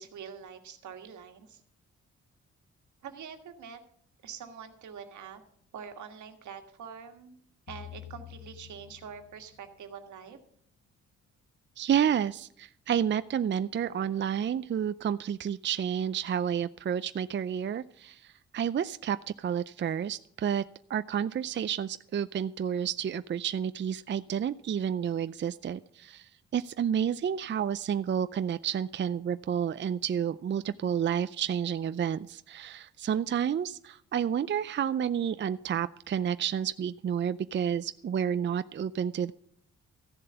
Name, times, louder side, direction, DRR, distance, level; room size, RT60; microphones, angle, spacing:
voice 1, 0.0-1.6 3.0-3.8 4.2-5.4 5.7-7.4 7.7-10.4, right 7 dB, 80° right, 6 dB, 1.7 m, -45 dB
sound 1, 7.7-9.9, left 13 dB, 60° left, 0.4 m, -48 dB
voice 2, 11.8-20.6 20.9-39.3, right 8 dB, 40° right, 13 dB, 0.5 m, -30 dB
14.5 x 7.4 x 6.9 m, 0.62 s
cardioid pair, 70°, 29 cm